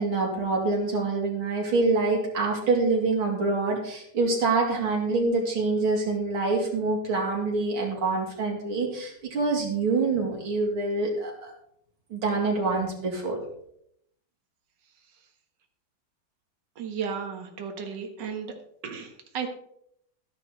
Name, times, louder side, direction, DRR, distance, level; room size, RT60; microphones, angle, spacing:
voice 1, 0.0-11.5 12.1-13.4, right 3 dB, 90° right, -1 dB, 3.5 m, -26 dB
voice 2, 16.8-18.5 18.8-19.5, right 6 dB, 60° right, 4 dB, 2.1 m, -34 dB
12.5 x 10.5 x 4.0 m, 0.71 s
omnidirectional pair, 2.2 m